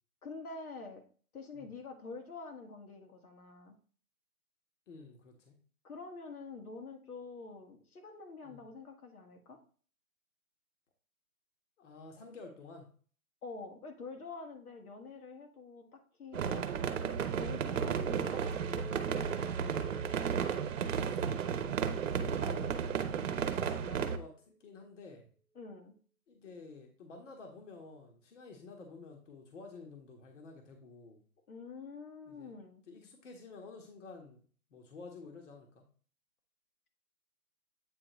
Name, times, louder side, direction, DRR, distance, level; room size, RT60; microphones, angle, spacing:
voice 1, 0.2-1.0 1.3-3.7 5.8-9.6 13.4-16.7 17.4-20.0 25.5-25.9 31.5-32.8, left 4 dB, 75° left, 3 dB, 1.7 m, -47 dB
voice 2, 4.9-5.6 8.4-8.7 11.8-12.9 20.9-21.3 22.1-24.3 24.6-25.3 26.3-31.2 32.3-32.5 32.9-34.4 34.7-35.8, left 4 dB, 55° left, 2 dB, 1.5 m, -51 dB
sound 1, 16.3-24.2, right 7 dB, 60° right, 0.9 m, -33 dB
Chink clink, 18.4-22.8 23.2-23.8, right 3 dB, 10° left, 0.6 m, -50 dB
8.6 x 3.8 x 3.1 m, 0.43 s
hypercardioid pair, 160°, 44 cm